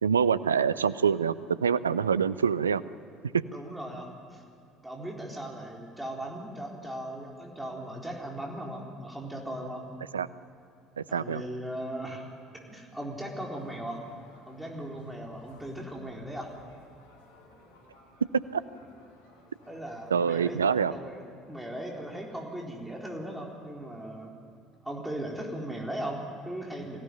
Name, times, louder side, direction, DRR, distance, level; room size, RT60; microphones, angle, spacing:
voice 1, 0.0-2.8 3.3-3.5 10.1-10.3 11.0-11.4 18.5-18.6 20.1-20.9, right 7 dB, 85° right, 17 dB, 0.5 m, -25 dB
voice 2, 3.5-4.4 4.8-9.9 11.1-12.3 12.7-14.0 14.5-16.6 19.7-20.6 20.9-24.3 24.8-27.0, right 1 dB, 5° right, -2 dB, 4.0 m, -38 dB
sound 1, 13.6-20.8, left 1 dB, 75° left, 3.6 m, -57 dB
23.5 x 16.5 x 9.4 m, 2.5 s
figure-of-eight pair, 60°, 0 cm